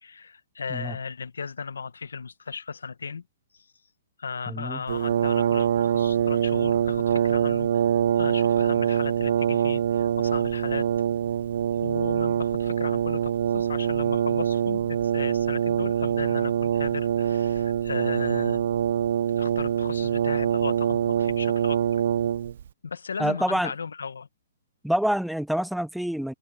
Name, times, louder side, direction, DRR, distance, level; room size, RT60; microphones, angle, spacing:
voice 1, 0.0-3.2 3.5-3.6 4.2-10.9 11.8-18.6 19.4-21.8 22.8-24.3, left 5 dB, 85° left, 1.4 m, -36 dB
voice 2, 4.5-4.8 23.2-23.7 24.8-26.3, equal, ahead, 0.5 m, -26 dB
Brass instrument, 4.9-22.7, right 9 dB, 60° right, 0.4 m, -24 dB
hypercardioid pair, 140°, 0 cm